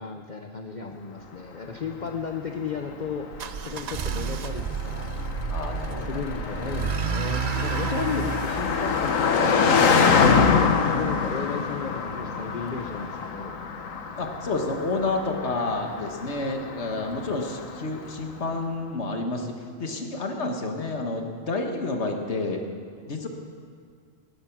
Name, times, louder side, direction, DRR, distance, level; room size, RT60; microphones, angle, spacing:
voice 1, 0.0-3.3 3.6-5.1 6.0-9.7 10.8-13.6, left 5 dB, 40° left, 4 dB, 0.8 m, -34 dB
Car passing by, 1.8-18.2, left 5 dB, 85° left, 1.4 m, -26 dB
sound 1, 3.3-10.2, right 8 dB, 70° right, 0.3 m, -31 dB
voice 2, 5.5-6.2 6.5-6.6 14.2-19.5 19.8-22.6 23.1-23.3, left 2 dB, 60° left, 3 dB, 1.8 m, -29 dB
19.5 x 10.5 x 6.1 m, 2.1 s
omnidirectional pair, 1.3 m